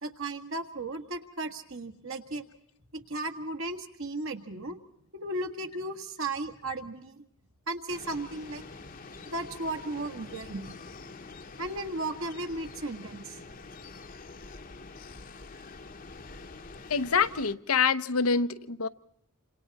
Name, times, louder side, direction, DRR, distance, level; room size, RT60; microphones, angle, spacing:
voice 1, 0.0-2.4 2.9-4.8 5.2-7.2 7.7-8.6 9.3-10.7 11.6-13.4, right 2 dB, 65° right, 1.9 m, -35 dB
sound 1, 7.9-17.5, left 3 dB, 40° left, 1.0 m, -46 dB
voice 2, 16.9-18.9, left 5 dB, 80° left, 0.9 m, -26 dB
28.0 x 26.5 x 4.2 m
head